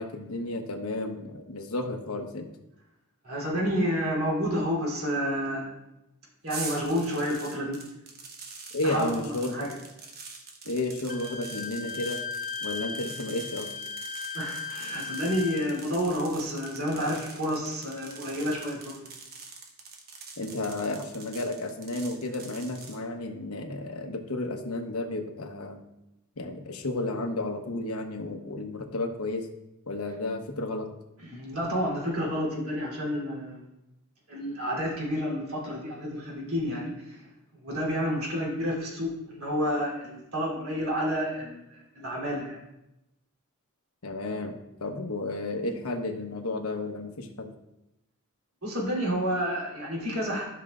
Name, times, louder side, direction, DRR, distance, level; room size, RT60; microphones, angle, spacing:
voice 1, 0.0-2.5 8.7-9.7 10.6-12.2 12.6-13.7 20.4-25.8 26.4-29.5 29.9-30.9 44.0-47.5, left 2 dB, 85° left, 4 dB, 1.0 m, -32 dB
voice 2, 3.2-5.7 6.4-7.8 8.8-9.7 14.3-19.1 31.2-33.7 34.3-37.3 37.5-42.6 48.6-50.4, equal, 75° right, -4 dB, 3.1 m, -30 dB
sound 1, 6.5-23.0, right 4 dB, 45° right, 1.1 m, -44 dB
Wind instrument woodwind instrument, 11.1-15.8, left 5 dB, 35° left, 0.4 m, -37 dB
12.5 x 5.9 x 2.4 m, 0.90 s
head